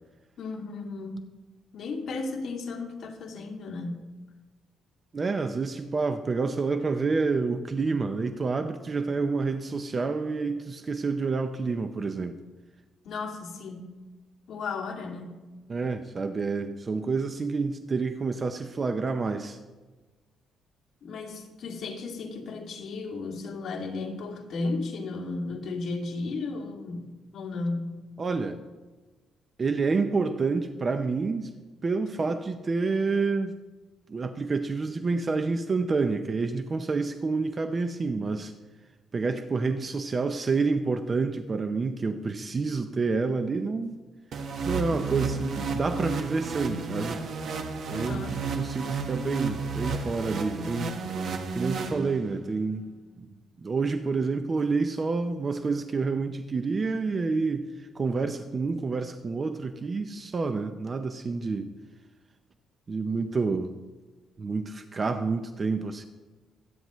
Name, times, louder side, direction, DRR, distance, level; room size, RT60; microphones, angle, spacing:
voice 1, 0.4-1.3 1.7-4.0 13.0-13.9 14.5-15.4 21.0-28.0 44.9-45.4 47.9-48.5, left 3 dB, 55° left, 0 dB, 2.5 m, -34 dB
voice 2, 5.1-12.4 15.7-19.6 28.2-28.6 29.6-31.5 31.8-33.5 34.1-38.5 39.1-44.0 44.6-47.2 47.9-50.9 51.5-52.9 53.6-57.7 57.9-61.7 62.9-63.7 64.4-66.1, right 4 dB, 30° right, 8 dB, 0.6 m, -28 dB
sound 1, 44.3-52.5, right 4 dB, 60° right, 1.4 m, -32 dB
24.0 x 9.5 x 3.1 m, 1.2 s
cardioid pair, 130°, 0 cm